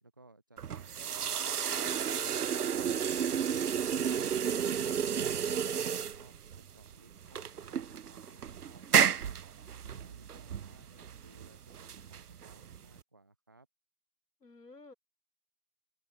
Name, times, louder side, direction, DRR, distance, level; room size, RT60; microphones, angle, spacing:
voice 1, 0.0-1.6 4.4-9.4 9.9-13.7, right 2 dB, 15° right, 0.9 m, -61 dB
sound 1, 0.6-13.0, right 8 dB, 65° right, 0.6 m, -32 dB
sound 2, 2.7-8.6 9.0-9.4 10.5-10.8 12.0-12.4, right 6 dB, 35° right, 4.2 m, -60 dB
voice 2, 14.4-14.9, left 3 dB, 70° left, 3.3 m, -55 dB
open air
figure-of-eight pair, 150°, 49 cm